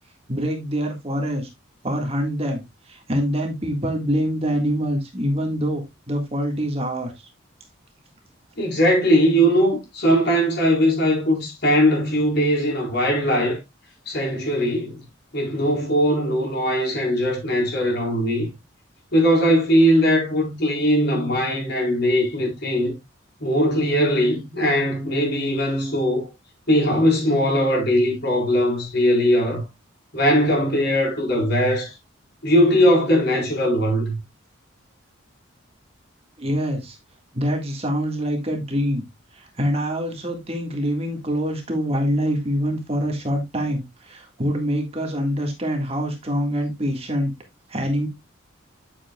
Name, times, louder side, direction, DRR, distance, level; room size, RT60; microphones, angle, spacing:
voice 1, 0.3-1.5 1.8-7.3 36.4-37.0 37.3-39.0 39.3-47.3 47.7-48.1, equal, 30° right, 1.8 m, -25 dB
voice 2, 8.6-13.6 14.1-15.0 15.3-18.5 19.1-22.9 23.4-26.3 26.7-29.6 30.1-31.9 32.4-34.2, equal, 50° left, 4.4 m, -20 dB
10.0 x 7.4 x 2.3 m
head